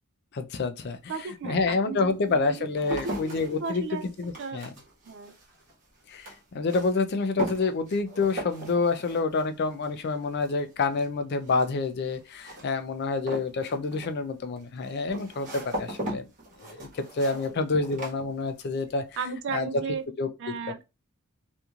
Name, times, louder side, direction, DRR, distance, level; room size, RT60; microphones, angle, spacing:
voice 1, 0.3-1.0 1.4-3.8 4.2-4.7 6.1-16.3 16.6-19.0 19.5-19.7 20.2-20.5, left 3 dB, 50° left, 0.4 m, -28 dB
sound 1, 0.9-1.0 1.7-18.9 19.2-19.7, right 1 dB, 35° right, 1.2 m, -40 dB
voice 2, 1.1-4.1 4.4-4.6 5.0-5.4 17.5-17.6 19.2-20.0 20.4-20.8, right 4 dB, 55° right, 0.4 m, -35 dB
2.9 x 2.5 x 2.3 m
head